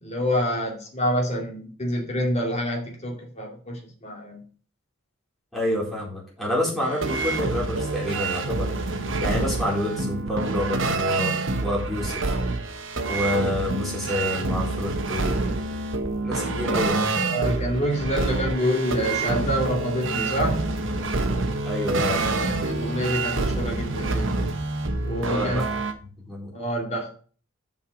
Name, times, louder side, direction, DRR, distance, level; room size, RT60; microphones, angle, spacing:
voice 1, 0.0-4.4 17.3-20.8 22.6-24.3 25.0-25.7 26.5-27.1, equal, 30° left, 1 dB, 2.5 m, -27 dB
voice 2, 5.5-8.7 9.2-11.3 11.6-12.2 13.0-15.5 16.2-17.0 21.6-22.2 25.3-25.6 26.3-26.5, left 1 dB, ahead, -5 dB, 4.2 m, -28 dB
sound 1, 6.8-25.9, right 3 dB, 60° right, 1.1 m, -27 dB
7.4 x 5.5 x 6.2 m, 0.41 s
head